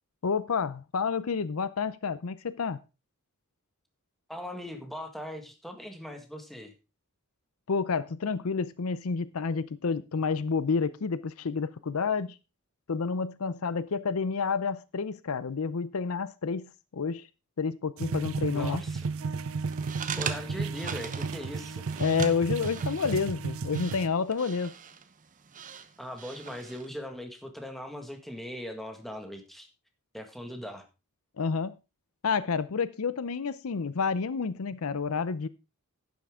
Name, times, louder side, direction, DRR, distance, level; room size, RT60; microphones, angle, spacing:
voice 1, 0.2-2.8 7.7-12.4 12.9-17.3 17.6-18.8 22.0-24.7 31.4-31.7 32.2-35.5, left 5 dB, 70° left, 0.6 m, -29 dB
voice 2, 4.3-6.7 18.5-19.1 20.2-21.8 26.0-29.7 30.1-30.9, left 1 dB, ahead, 1.7 m, -40 dB
sound 1, 18.0-24.1, right 4 dB, 65° right, 0.5 m, -33 dB
sound 2, 19.6-26.9, right 7 dB, 35° right, 0.9 m, -41 dB
11.5 x 9.5 x 3.7 m
head